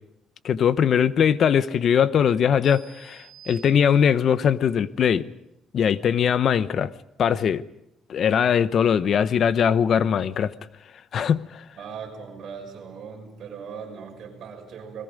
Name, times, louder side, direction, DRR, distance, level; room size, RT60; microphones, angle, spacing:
voice 1, 0.4-5.3 5.7-6.9 7.2-7.6 8.1-10.5 11.1-11.6, left 8 dB, 50° left, 0.8 m, -21 dB
sound 1, 2.6-4.4, right 7 dB, 25° left, 6.1 m, -50 dB
voice 2, 11.8-15.0, right 6 dB, 55° right, 6.3 m, -39 dB
30.0 x 21.0 x 5.2 m
cardioid pair, 145°, 0 cm